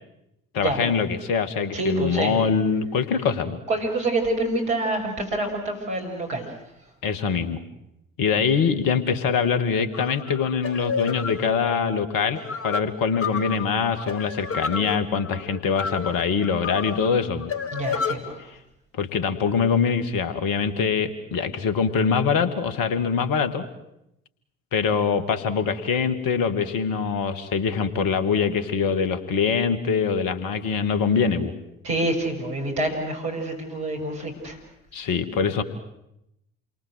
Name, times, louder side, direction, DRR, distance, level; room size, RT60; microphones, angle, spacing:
voice 1, 0.5-3.6 7.0-7.6 8.2-17.5 19.0-23.6 24.7-31.5 34.9-35.6, left 6 dB, 60° left, 11 dB, 2.5 m, -24 dB
voice 2, 1.7-2.4 3.7-6.5 17.7-18.4 31.8-34.6, right 2 dB, 70° right, 1 dB, 6.4 m, -27 dB
sound 1, 9.9-18.2, left 6 dB, 35° left, 3.0 m, -31 dB
29.0 x 23.5 x 7.9 m, 0.82 s
figure-of-eight pair, 50°, 39 cm